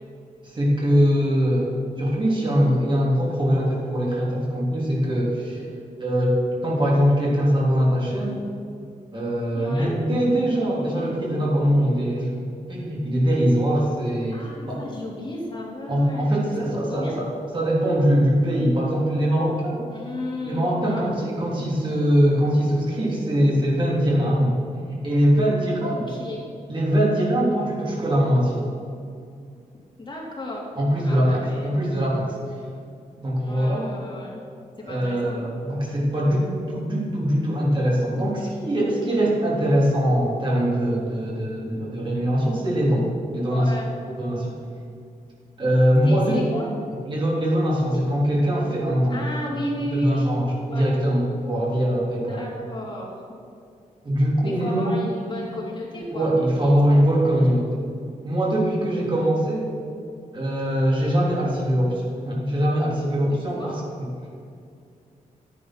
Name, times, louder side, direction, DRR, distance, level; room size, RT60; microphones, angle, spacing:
voice 1, 0.4-1.7 2.0-5.6 6.0-8.4 9.1-12.4 12.7-14.8 15.9-17.3 17.5-19.8 20.4-26.1 26.7-28.6 30.7-32.4 33.2-33.9 34.8-43.1 43.3-43.7 44.1-44.5 45.6-46.5 47.1-49.2 49.9-52.4 54.0-55.0 56.1-57.7 58.2-59.7 60.3-63.8, equal, 35° right, -5 dB, 3.4 m, -22 dB
voice 2, 9.5-10.0 14.3-16.3 16.9-17.1 19.9-21.1 25.8-26.4 30.0-30.7 31.0-31.7 33.4-34.4 34.8-35.6 43.4-43.9 45.6-45.7 46.0-46.7 47.9-48.0 48.7-48.8 49.1-50.3 50.6-50.9 52.2-53.2 54.4-56.3 56.6-57.0 57.2-57.4 63.3-63.7, left 1 dB, 35° left, -4 dB, 3.2 m, -33 dB
12.5 x 9.4 x 6.0 m, 2.3 s
wide cardioid pair, 120°, 14 cm